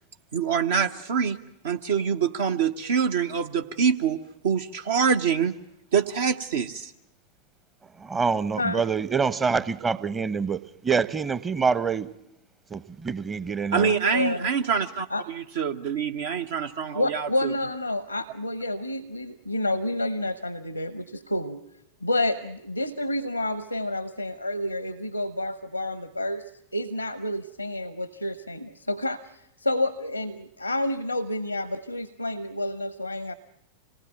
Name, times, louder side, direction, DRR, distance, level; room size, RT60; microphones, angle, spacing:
voice 1, 0.3-1.4 1.6-5.5 5.9-6.9 13.7-17.5, right 6 dB, 60° right, 1.0 m, -25 dB
voice 2, 8.0-12.1 12.7-13.9, right 5 dB, 20° right, 0.9 m, -26 dB
voice 3, 14.0-14.5 15.1-15.3 16.9-21.6 22.0-33.3, left 1 dB, 85° left, 0.8 m, -29 dB
26.0 x 19.5 x 9.0 m
figure-of-eight pair, 90°, 0 cm